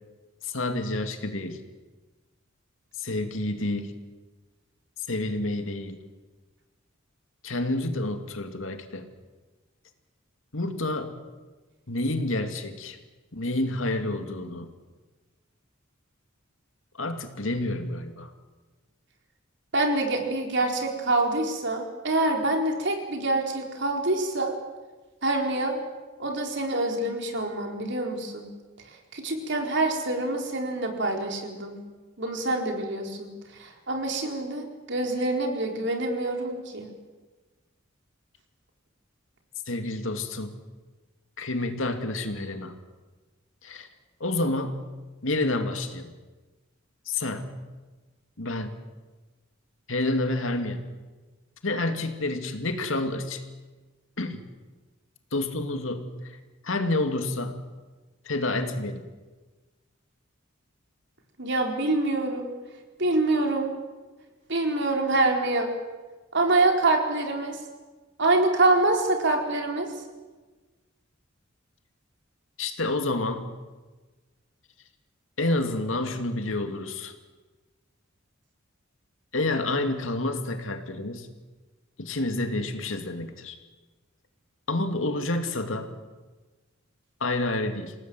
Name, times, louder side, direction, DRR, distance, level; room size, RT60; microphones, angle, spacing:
voice 1, 0.4-1.6 3.0-3.9 5.1-6.0 7.4-9.0 10.5-11.2 11.9-13.0 13.3-14.7 17.0-18.3 39.7-40.6 41.4-42.7 43.6-43.9 44.2-44.9 45.2-46.1 47.1-47.6 48.4-48.8 49.9-50.8 51.6-53.4 54.2-54.4 55.3-56.4 56.6-57.6 58.2-59.1 72.6-73.5 75.4-77.1 79.3-81.3 82.0-83.6 84.7-85.9 87.2-87.9, left 2 dB, 75° left, 6 dB, 2.5 m, -29 dB
voice 2, 19.7-24.5 25.2-25.8 26.2-28.5 29.1-31.8 32.2-36.9 61.4-62.5 63.0-63.7 64.5-65.7 66.3-67.6 68.2-69.9, right 2 dB, 60° right, 3 dB, 4.3 m, -26 dB
28.5 x 18.0 x 7.8 m, 1.3 s
head